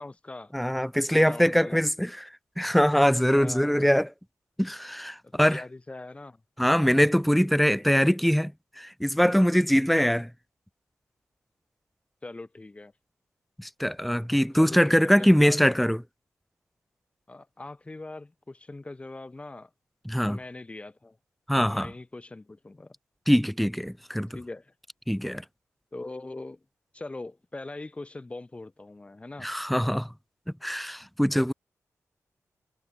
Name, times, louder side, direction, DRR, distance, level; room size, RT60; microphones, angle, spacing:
voice 1, 0.0-0.5 1.0-1.8 3.3-3.9 5.2-6.4 12.2-12.9 14.5-15.8 17.3-19.7 20.3-21.2 21.6-22.9 24.3-24.7 25.9-26.6 26.9-29.5 31.3-31.5, left 2 dB, 20° left, 2.6 m, -41 dB
voice 2, 0.5-2.1 2.6-4.1 4.6-5.6 6.6-8.5 8.8-10.3 13.6-16.0 20.0-20.4 21.5-21.9 23.3-24.3 25.1-25.4 29.4-30.1 30.6-31.5, equal, ahead, 1.2 m, -23 dB
wide cardioid pair, 130°, 6 cm